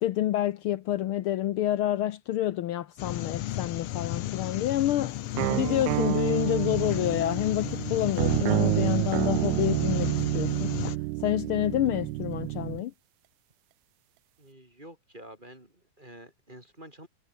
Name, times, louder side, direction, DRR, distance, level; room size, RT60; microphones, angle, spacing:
voice 1, 0.0-5.2 5.5-10.7 11.2-12.9, left 13 dB, 85° left, 1.2 m, -28 dB
sound 1, 3.0-11.0, left 13 dB, 65° left, 1.6 m, -34 dB
sound 2, 5.4-12.8, right 19 dB, 85° right, 2.1 m, -29 dB
voice 2, 14.4-17.1, right 1 dB, 15° right, 7.3 m, -49 dB
omnidirectional pair, 3.4 m